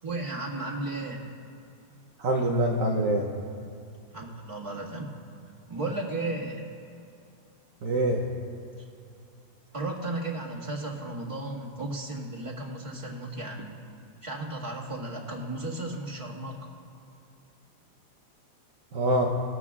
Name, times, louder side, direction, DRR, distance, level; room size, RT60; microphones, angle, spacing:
voice 1, 0.0-1.3 4.1-5.1 5.7-6.7 9.7-13.7 14.2-16.7, right 2 dB, 20° right, -5 dB, 1.8 m, -34 dB
voice 2, 2.2-3.3 7.8-8.2 18.9-19.3, right 1 dB, 60° right, -1 dB, 1.2 m, -24 dB
20.0 x 14.0 x 2.4 m, 2.5 s
omnidirectional pair, 1.7 m